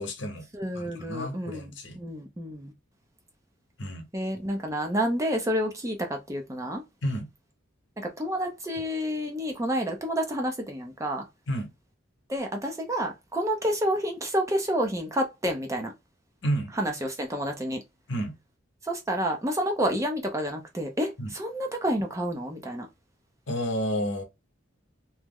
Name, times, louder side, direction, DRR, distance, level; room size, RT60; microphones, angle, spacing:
voice 1, 0.0-0.5 0.7-2.0 3.8-4.1 7.0-7.3 11.5-11.7 16.4-16.7 18.1-18.3 21.2-21.3 23.5-24.2, equal, 60° left, 0.9 m, -30 dB
voice 2, 0.5-1.7 1.9-2.7 4.1-6.8 8.0-11.3 12.3-15.9 16.8-17.8 18.8-22.9, equal, 15° right, 0.5 m, -29 dB
3.0 x 2.0 x 3.6 m
head